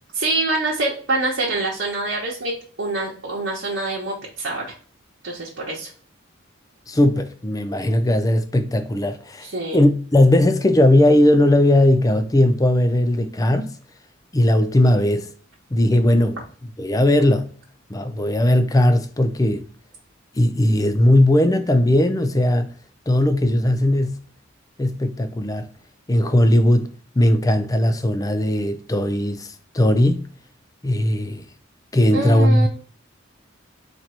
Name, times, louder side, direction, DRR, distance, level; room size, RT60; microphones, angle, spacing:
voice 1, 0.1-2.5 2.8-4.7 5.2-5.9 9.4-9.8 32.1-32.7, right 2 dB, 65° right, 1.1 m, -25 dB
voice 2, 6.9-9.5 9.7-13.8 14.3-15.3 15.7-16.4 16.8-17.5 17.9-19.7 20.4-22.7 23.1-24.2 24.8-25.7 26.1-26.9 27.2-29.5 29.7-30.3 30.8-31.4 31.9-32.7, left 1 dB, 20° left, 0.4 m, -18 dB
4.4 x 2.6 x 4.3 m
head